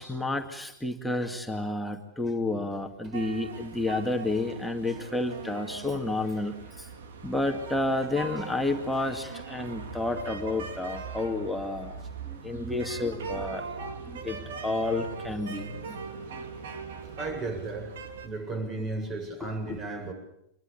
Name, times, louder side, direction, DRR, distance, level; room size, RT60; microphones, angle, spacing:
voice 1, 0.0-6.5 7.2-11.9 12.3-15.7 19.4-19.8, left 2 dB, 5° left, 2.4 m, -30 dB
sound 1, 3.1-18.3, right 4 dB, 65° right, 3.2 m, -40 dB
voice 2, 17.2-18.0 18.2-20.1, right 3 dB, 30° right, 7.6 m, -35 dB
26.5 x 22.5 x 8.5 m
figure-of-eight pair, 100°, 0 cm